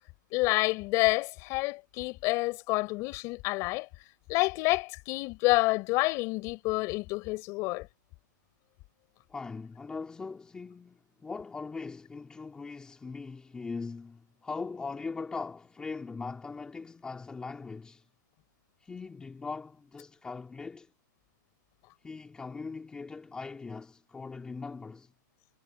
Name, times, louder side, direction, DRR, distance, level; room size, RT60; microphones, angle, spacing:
voice 1, 0.3-3.9 4.3-7.9, left 23 dB, 30° left, 5.1 m, -28 dB
voice 2, 9.3-18.1 18.8-20.9 22.0-25.1, left 4 dB, 5° left, 3.8 m, -40 dB
hypercardioid pair, 165°, 11 cm